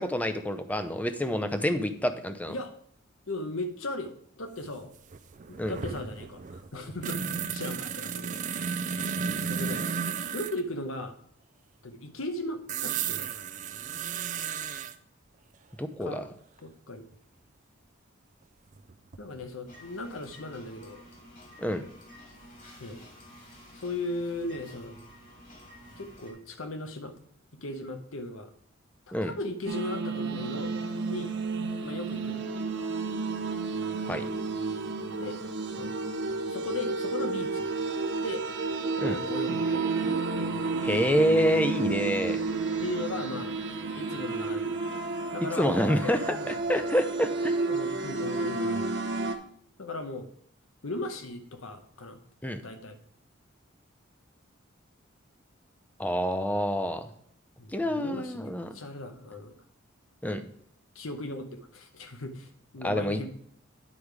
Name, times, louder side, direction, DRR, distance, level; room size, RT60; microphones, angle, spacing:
voice 1, 0.0-2.5 5.6-5.8 15.8-16.2 21.6-21.8 29.1-29.3 34.1-34.2 39.0-39.2 40.8-42.4 45.6-47.6 52.4-52.6 56.0-57.1 57.7-58.8 60.2-60.4 62.8-63.2, equal, 10° left, 9 dB, 0.6 m, -27 dB
voice 2, 3.3-4.9 5.5-8.8 9.5-9.9 10.3-11.2 11.8-13.4 16.0-16.3 16.6-17.1 19.2-21.0 22.8-23.0 23.7-25.0 26.0-27.1 27.6-28.5 29.1-31.3 31.8-32.4 35.2-35.4 35.8-35.9 36.5-37.7 38.2-38.4 39.0-40.0 42.8-43.6 43.9-44.8 45.3-46.5 47.7-48.9 49.8-50.3 50.8-52.2 52.6-53.0 57.6-59.6 60.9-63.3, left 2 dB, 90° left, 7 dB, 1.1 m, -37 dB
sound 1, 4.6-4.7 4.9-10.6 12.7-14.9 17.1-17.2 18.8-19.4 19.7-19.8, right 6 dB, 40° right, 0.4 m, -33 dB
sound 2, 19.7-26.3, equal, 40° left, 2.3 m, -51 dB
sound 3, 29.7-49.3, right 3 dB, 60° right, 0.9 m, -31 dB
9.8 x 5.0 x 4.8 m, 0.66 s
head